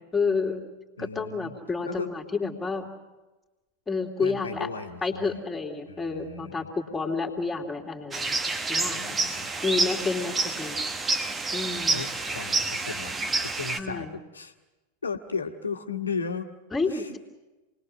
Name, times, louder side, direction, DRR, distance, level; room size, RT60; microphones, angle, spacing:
voice 1, 0.1-0.6 1.0-2.9 3.9-4.7 5.0-8.3 8.7-9.1 9.6-10.8 11.5-12.0 13.8-14.1 16.7-17.2, left 4 dB, 10° left, 2 dB, 2.8 m, -30 dB
voice 2, 1.0-1.6 1.8-2.1 4.2-5.4 5.9-6.7 8.9-9.5 11.9-14.5 15.0-16.5 16.9-17.1, left 5 dB, 75° left, 6 dB, 1.6 m, -35 dB
sound 1, 8.1-13.8, right 3 dB, 15° right, 1.4 m, -28 dB
28.0 x 20.5 x 6.4 m, 1.1 s
figure-of-eight pair, 90°, 0 cm